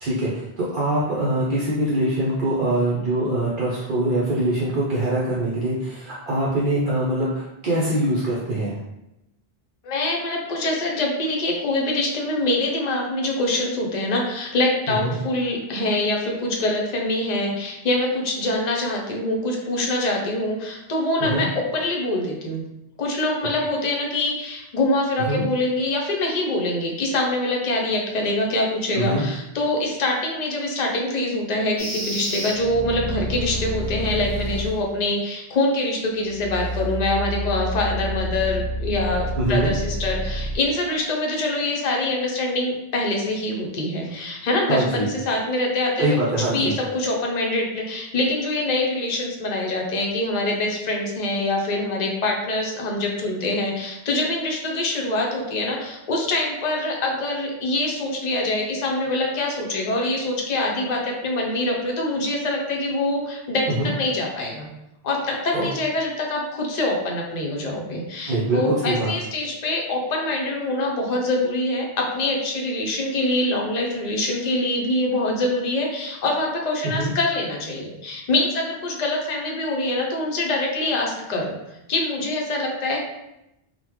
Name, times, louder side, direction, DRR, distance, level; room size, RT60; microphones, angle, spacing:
voice 1, 0.0-8.8 14.9-15.2 21.2-21.5 25.3-25.4 28.9-29.2 39.4-39.7 44.7-45.0 46.0-46.7 63.7-63.9 65.5-65.7 68.3-69.1 76.8-77.1, right 1 dB, 60° right, -6 dB, 0.7 m, -23 dB
voice 2, 9.8-22.6 23.0-46.1 46.5-64.7 65.0-81.6 81.9-83.0, left 2 dB, 50° left, 0 dB, 0.6 m, -24 dB
sound 1, 31.8-34.9 36.3-40.6, equal, 10° right, 1.2 m, -29 dB
3.7 x 2.1 x 2.9 m, 0.88 s
omnidirectional pair, 1.0 m